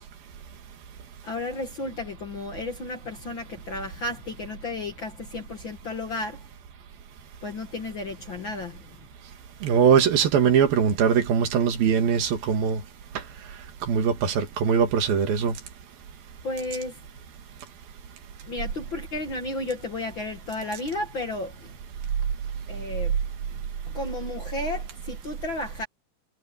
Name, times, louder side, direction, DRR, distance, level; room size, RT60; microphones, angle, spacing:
voice 1, 1.2-6.4 7.4-8.9 16.4-17.0 18.4-21.7 22.7-23.2 23.9-25.9, left 2 dB, 45° left, 1.8 m, -33 dB
voice 2, 9.6-12.8 13.9-15.6, right 7 dB, 75° right, 3.7 m, -21 dB
omnidirectional pair, 4.3 m